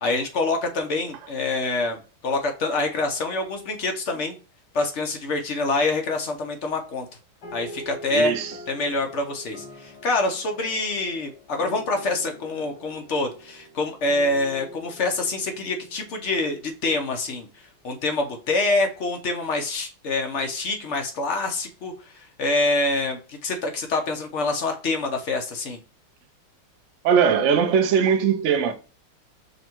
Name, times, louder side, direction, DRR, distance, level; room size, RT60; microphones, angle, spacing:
voice 1, 0.0-4.4 4.7-7.1 7.5-8.3 8.7-17.5 17.8-25.8, left 2 dB, 65° left, 0.7 m, -26 dB
sound 1, 7.4-17.2, equal, 85° left, 2.4 m, -44 dB
voice 2, 8.1-8.6 27.0-28.7, right 7 dB, 75° right, 0.6 m, -20 dB
5.2 x 2.3 x 4.4 m
omnidirectional pair, 2.2 m